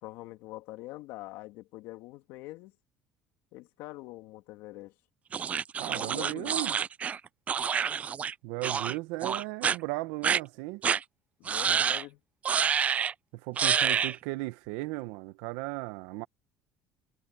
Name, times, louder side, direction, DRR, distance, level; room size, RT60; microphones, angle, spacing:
voice 1, 0.0-2.7 3.5-4.9 5.8-6.6 11.4-12.2, left 19 dB, 75° left, 2.4 m, -44 dB
sound 1, 5.3-8.3 8.6-8.9 9.2-9.8 10.2-10.4 10.8-11.0 11.5-12.0 12.4-13.1 13.6-14.1, right 7 dB, 35° right, 0.4 m, -28 dB
voice 2, 5.8-6.8 8.4-10.8 11.7-11.8 13.3-16.3, right 21 dB, 80° right, 1.3 m, -36 dB
supercardioid pair, 90°, 4 cm